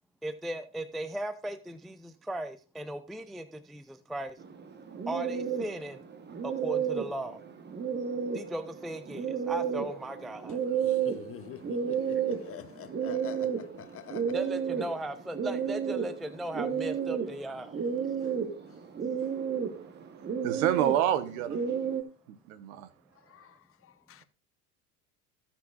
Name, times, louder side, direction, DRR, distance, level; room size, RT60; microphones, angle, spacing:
voice 1, 0.2-4.4 5.1-6.0 6.4-7.4 8.3-10.6 14.3-17.8, right 1 dB, ahead, 0.4 m, -37 dB
sound 1, 4.4-22.0, right 7 dB, 25° right, 1.2 m, -32 dB
voice 2, 10.8-14.3 23.3-23.6 23.8-24.2, left 11 dB, 30° left, 0.7 m, -46 dB
voice 3, 20.4-21.7 22.5-22.9, right 11 dB, 65° right, 1.2 m, -28 dB
18.0 x 6.0 x 2.4 m
hypercardioid pair, 85°, 44 cm